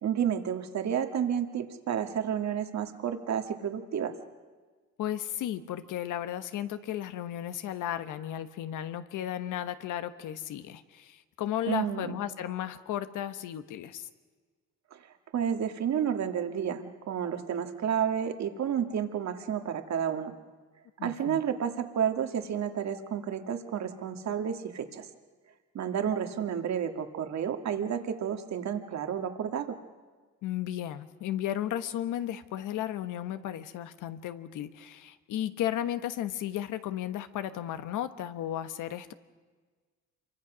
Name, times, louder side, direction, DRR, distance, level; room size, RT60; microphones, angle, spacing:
voice 1, 0.0-4.1 11.7-12.2 14.9-15.0 15.3-20.3 21.0-25.1 25.7-29.8, right 8 dB, 65° right, 6 dB, 2.0 m, -31 dB
voice 2, 5.0-14.1 21.0-21.4 30.4-39.1, left 11 dB, 85° left, 11 dB, 1.3 m, -34 dB
27.0 x 24.0 x 6.3 m, 1.4 s
cardioid pair, 90°, 30 cm